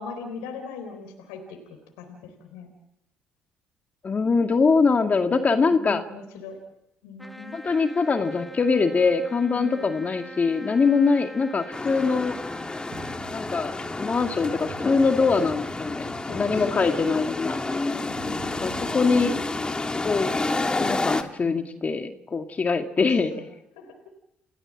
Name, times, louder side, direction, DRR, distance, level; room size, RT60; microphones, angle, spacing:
voice 1, 0.0-1.6 2.0-2.8 5.3-6.6 7.0-7.6 9.5-9.9 14.3-15.1 16.3-17.0 18.0-19.0 21.2-21.8 23.0-23.5 23.8-23.9, left 5 dB, 80° left, 5 dB, 3.9 m, -40 dB
voice 2, 4.0-6.0 7.5-12.4 13.3-13.7 14.0-17.6 18.6-19.4 20.0-20.4 20.8-23.3, left 4 dB, 35° left, 6 dB, 2.1 m, -23 dB
Trumpet, 7.2-13.2, equal, ahead, 2.5 m, -43 dB
sound 1, 11.7-21.2, left 2 dB, 20° left, 2.2 m, -30 dB
sound 2, 12.9-19.6, right 4 dB, 55° right, 5.7 m, -45 dB
30.0 x 16.5 x 7.5 m, 0.86 s
hypercardioid pair, 60°, 4 cm